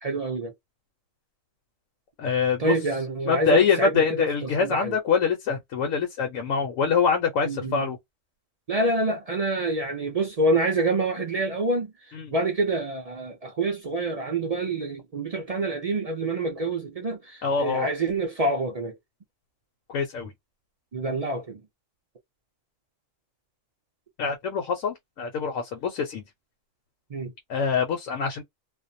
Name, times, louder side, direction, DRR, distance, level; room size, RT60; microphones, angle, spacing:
voice 1, 0.0-0.5 2.6-4.3 4.6-5.0 7.4-7.9 8.7-18.9 20.9-21.6 27.1-27.3, right 2 dB, 65° right, 0.3 m, -27 dB
voice 2, 2.2-2.7 3.3-8.0 12.1-12.3 17.4-17.9 19.9-20.3 24.2-26.2 27.5-28.4, left 6 dB, 80° left, 1.0 m, -24 dB
2.5 x 2.0 x 2.5 m
omnidirectional pair, 1.4 m